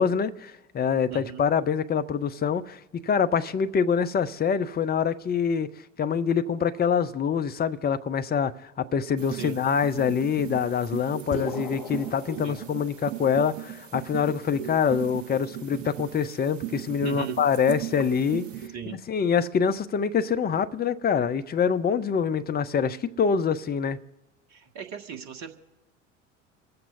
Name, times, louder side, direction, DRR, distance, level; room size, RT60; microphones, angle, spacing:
voice 1, 0.0-5.7 6.0-18.5 19.1-24.0, left 7 dB, 25° left, 0.9 m, -25 dB
voice 2, 1.1-1.4 9.4-9.6 12.4-12.6 17.0-17.4 18.7-19.0 24.5-25.6, right 7 dB, 40° right, 2.1 m, -37 dB
sound 1, 9.2-18.7, right 11 dB, 75° right, 1.2 m, -37 dB
sound 2, 11.3-13.3, left 4 dB, 60° left, 1.3 m, -36 dB
28.5 x 14.5 x 2.7 m
figure-of-eight pair, 65°, 38 cm